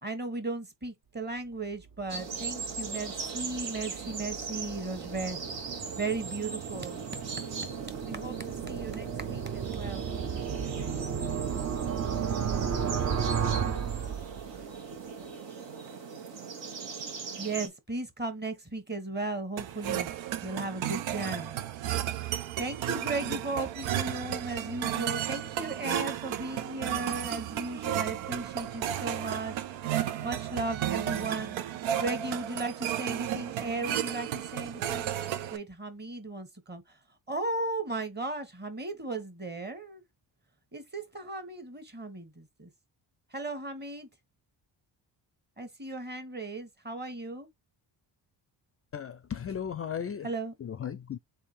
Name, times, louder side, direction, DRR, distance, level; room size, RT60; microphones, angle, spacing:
voice 1, 0.0-5.4 6.0-7.0 8.0-10.1 17.4-20.1 20.4-21.6 22.6-29.6 30.2-31.6 32.0-35.1 35.5-37.0 37.3-40.0 40.7-42.7 43.3-44.1 45.6-47.5 50.2-50.5, right 2 dB, 20° right, 1.3 m, -36 dB
sound 1, 1.8-14.7, right 7 dB, 40° right, 0.7 m, -34 dB
sound 2, 2.1-17.7, right 5 dB, 70° right, 1.5 m, -40 dB
voice 2, 10.6-11.0 12.8-13.7 14.1-15.2 15.6-15.9, right 7 dB, 55° right, 1.0 m, -58 dB
sound 3, 19.6-35.6, right 11 dB, 90° right, 0.7 m, -33 dB
voice 3, 48.9-50.3 50.6-51.2, left 8 dB, 30° left, 0.4 m, -36 dB
3.6 x 2.8 x 4.3 m
cardioid pair, 80°, 45 cm